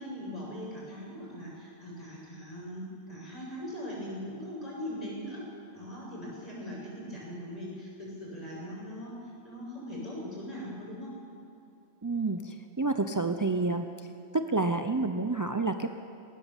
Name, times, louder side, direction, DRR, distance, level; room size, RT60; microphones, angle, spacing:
voice 1, 0.0-5.4 5.7-9.2 9.4-11.1, equal, 25° left, -5 dB, 7.3 m, -40 dB
voice 2, 12.0-13.9 14.3-15.9, right 3 dB, 30° right, 7 dB, 0.3 m, -29 dB
19.5 x 18.5 x 7.3 m, 2.5 s
omnidirectional pair, 1.4 m